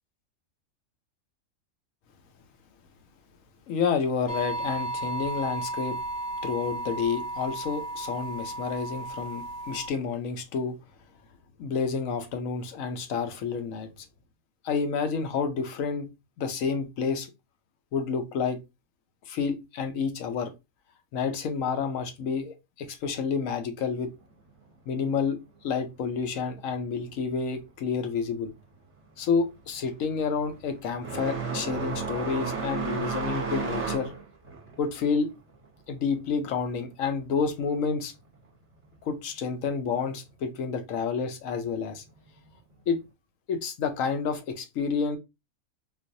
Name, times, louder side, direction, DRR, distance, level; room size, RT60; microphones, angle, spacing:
voice 1, 3.7-6.0 6.4-10.8 11.6-14.1 14.6-16.1 16.4-17.3 17.9-18.6 19.3-20.5 21.1-24.1 24.9-25.4 25.6-28.5 29.2-34.1 34.8-35.3 35.9-38.1 39.1-42.0 42.9-43.0 43.5-45.2, left 5 dB, 75° left, 1.0 m, -29 dB
sound 1, 4.3-9.9, right 2 dB, 45° left, 0.8 m, -34 dB
sound 2, 28.4-28.8 29.1-37.4 37.7-38.7 39.7-39.8 40.6-40.7 42.5-42.6, right 5 dB, 25° right, 1.0 m, -34 dB
3.9 x 2.5 x 2.6 m
omnidirectional pair, 1.4 m